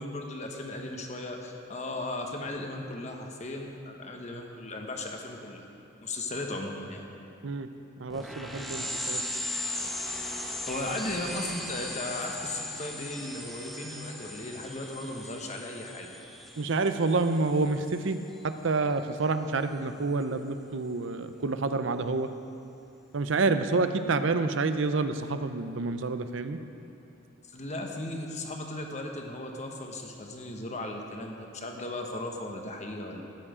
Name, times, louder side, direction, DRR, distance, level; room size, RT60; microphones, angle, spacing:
voice 1, 0.0-5.6 6.0-7.0 10.4-16.2 27.5-33.2, left 2 dB, 35° left, 2 dB, 1.2 m, -36 dB
voice 2, 8.0-9.2 16.6-18.2 18.4-22.3 23.1-26.6, right 3 dB, 70° right, 10 dB, 0.6 m, -28 dB
sound 1, 8.1-18.2, left 1 dB, ahead, 0.9 m, -38 dB
13.5 x 10.0 x 5.0 m, 2.7 s
head